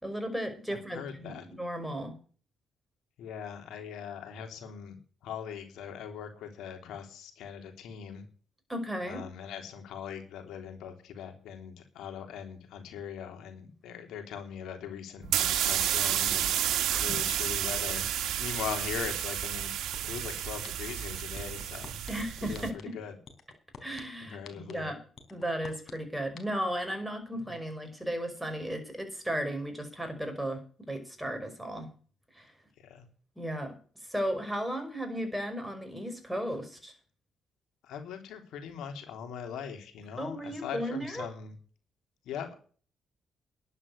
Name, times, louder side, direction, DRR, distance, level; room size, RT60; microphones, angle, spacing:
voice 1, 0.0-2.1 8.7-9.3 16.9-17.3 22.1-22.9 23.8-25.0 25.3-31.9 32.3-32.5 33.4-36.9 40.2-41.3, equal, 5° right, 5 dB, 5.3 m, -35 dB
voice 2, 0.9-1.4 3.2-5.0 5.2-8.2 9.0-16.5 17.0-18.1 18.4-19.7 20.0-22.0 22.4-22.7 22.9-23.1 24.3-24.9 32.8-33.0 37.8-41.5 42.2-42.5, left 8 dB, 85° left, 5 dB, 3.4 m, -40 dB
sound 1, 15.2-22.7, right 11 dB, 75° right, 2.0 m, -31 dB
sound 2, 19.0-19.1 19.4-20.2 20.6-20.9 21.3-22.1 22.5-22.8 23.3-24.0 24.4-24.7 25.2-25.9 26.4-26.5, left 7 dB, 55° left, 4.1 m, -46 dB
11.5 x 9.9 x 6.7 m, 0.42 s
cardioid pair, 90°, 0 cm